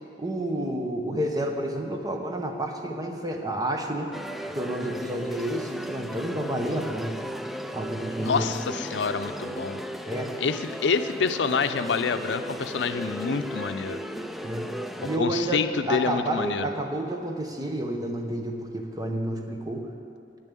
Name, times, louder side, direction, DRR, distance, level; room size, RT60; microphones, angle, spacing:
voice 1, 0.2-4.1 4.5-7.3 7.7-8.5 10.0-10.4 14.4-19.9, right 1 dB, 20° right, 3 dB, 1.0 m, -30 dB
sound 1, 4.1-15.2, equal, ahead, 0.3 m, -36 dB
voice 2, 8.2-9.8 10.4-14.0 15.2-16.7, left 5 dB, 90° left, 10 dB, 0.5 m, -27 dB
9.7 x 7.1 x 8.4 m, 2.6 s
head